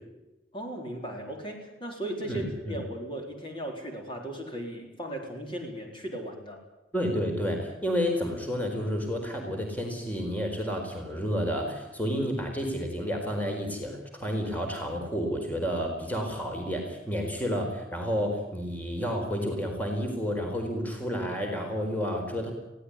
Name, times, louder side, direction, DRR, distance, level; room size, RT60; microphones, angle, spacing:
voice 1, 0.5-6.6, right 1 dB, 25° left, 1 dB, 4.4 m, -37 dB
voice 2, 2.2-2.8 6.9-22.5, equal, 10° left, 2 dB, 4.3 m, -30 dB
22.5 x 17.0 x 9.9 m, 0.98 s
head